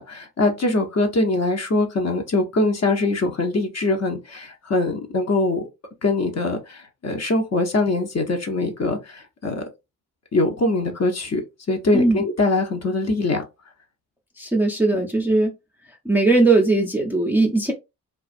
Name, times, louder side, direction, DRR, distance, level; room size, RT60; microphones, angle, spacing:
voice 1, 0.0-5.6 6.0-9.6 10.3-11.4 11.7-13.4, left 2 dB, 35° left, 0.8 m, -22 dB
voice 2, 11.9-12.2 14.4-15.5 16.1-17.7, right 2 dB, 5° right, 0.6 m, -19 dB
2.4 x 2.3 x 2.5 m
hypercardioid pair, 40°, 43 cm